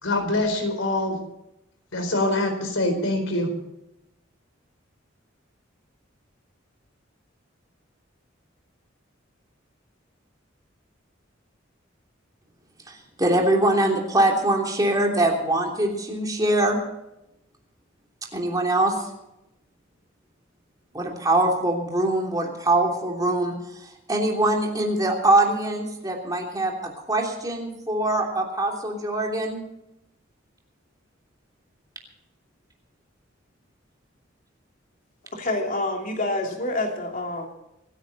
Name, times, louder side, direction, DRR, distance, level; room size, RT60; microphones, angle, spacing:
voice 1, 0.0-1.2 1.9-3.5, left 2 dB, 90° left, 5 dB, 4.2 m, -24 dB
voice 2, 12.9-16.8 18.3-19.0 20.9-23.5 24.1-29.6, right 1 dB, 20° right, 0 dB, 3.1 m, -23 dB
voice 3, 35.4-37.5, left 2 dB, 45° left, 2 dB, 2.9 m, -27 dB
25.5 x 10.0 x 4.2 m, 0.89 s
head